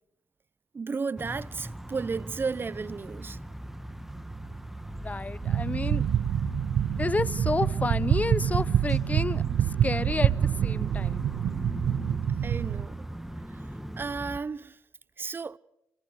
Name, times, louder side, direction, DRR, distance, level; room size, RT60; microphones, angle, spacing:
voice 1, 0.7-3.4 12.4-13.1 13.5-13.6 14.0-14.8 15.2-15.6, right 4 dB, 40° right, 0.7 m, -33 dB
sound 1, 1.2-14.4, right 1 dB, 5° right, 1.5 m, -39 dB
voice 2, 5.0-6.0 7.0-9.4 9.8-11.3, left 3 dB, 25° left, 0.9 m, -30 dB
sound 2, 5.4-12.9, right 10 dB, 70° right, 0.8 m, -26 dB
29.5 x 21.0 x 4.9 m
supercardioid pair, 60°, 6 cm